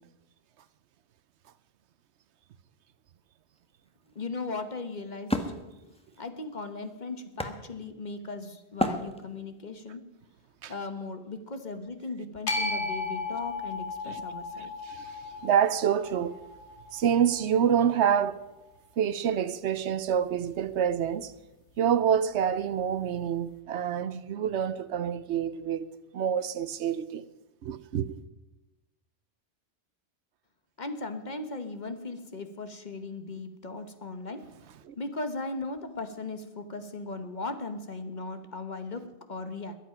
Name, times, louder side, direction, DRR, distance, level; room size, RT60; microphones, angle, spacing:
Wood, 3.5-8.2 8.8-9.7, left 1 dB, 5° left, 1.0 m, -34 dB
voice 1, 4.1-5.5 6.2-10.0 10.7-14.7 30.8-34.4 35.0-39.7, left 3 dB, 40° left, 1.2 m, -37 dB
sound 1, 12.5-18.7, left 3 dB, 70° left, 1.9 m, -36 dB
voice 2, 14.6-16.3 16.9-18.4 19.0-21.3 21.8-25.9 26.1-27.2 27.6-28.2 34.8-34.9, right 8 dB, 70° right, 0.9 m, -27 dB
21.5 x 8.3 x 5.7 m
omnidirectional pair, 1.2 m